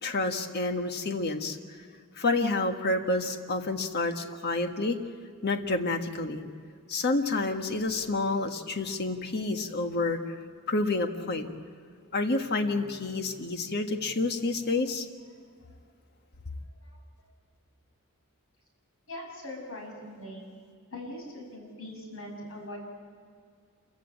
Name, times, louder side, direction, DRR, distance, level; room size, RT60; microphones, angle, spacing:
voice 1, 0.0-1.6 2.2-5.0 5.4-6.4 6.9-10.4 10.7-11.5 12.1-15.1, left 2 dB, 50° left, 5 dB, 1.5 m, -29 dB
voice 2, 16.8-17.3 19.1-20.4 20.9-22.8, left 1 dB, 65° left, 0 dB, 7.1 m, -42 dB
27.0 x 15.5 x 8.8 m, 2.1 s
head